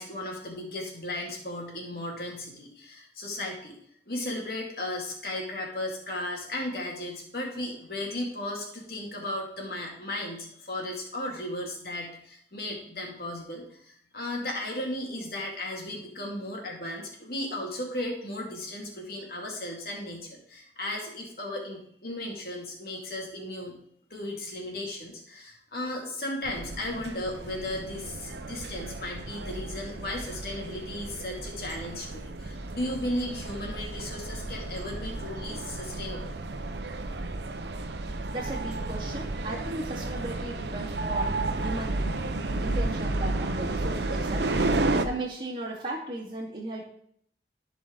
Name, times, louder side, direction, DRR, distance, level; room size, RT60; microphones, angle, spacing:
voice 1, 0.0-3.8 4.1-23.8 24.1-36.3, left 1 dB, 55° left, -1 dB, 2.6 m, -35 dB
sound 1, 26.4-45.1, right 2 dB, 80° right, 0.8 m, -32 dB
voice 2, 38.3-42.2 42.6-44.5 45.0-46.8, right 2 dB, 30° right, -7 dB, 2.2 m, -36 dB
14.5 x 5.1 x 4.0 m, 0.67 s
head